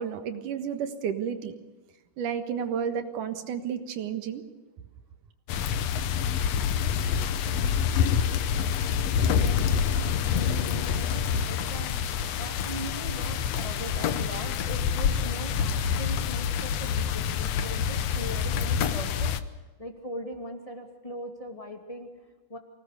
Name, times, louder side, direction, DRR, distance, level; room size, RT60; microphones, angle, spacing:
voice 1, 0.0-1.5 2.2-4.4, right 7 dB, 75° right, 8 dB, 3.0 m, -31 dB
sound 1, 5.5-19.4, left 7 dB, 65° left, 1.8 m, -27 dB
voice 2, 9.2-19.3 19.8-22.6, equal, 10° left, 3 dB, 2.0 m, -40 dB
24.5 x 18.5 x 6.7 m, 1.2 s
omnidirectional pair, 3.7 m